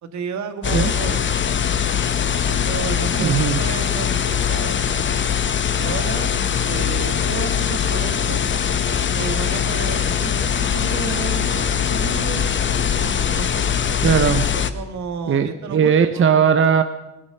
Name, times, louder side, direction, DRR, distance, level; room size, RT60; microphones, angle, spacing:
voice 1, 0.0-1.3 2.4-5.1 5.8-6.3 6.6-8.4 9.1-12.6 13.0-13.7 14.5-16.3, right 5 dB, 70° right, 8 dB, 1.7 m, -32 dB
sound 1, 0.6-14.7, left 8 dB, 40° left, 1.0 m, -21 dB
voice 2, 3.2-3.6 14.0-14.5 15.3-16.8, right 7 dB, 45° right, 9 dB, 0.8 m, -18 dB
18.5 x 10.5 x 6.7 m, 1.0 s
cardioid pair, 90°, 30 cm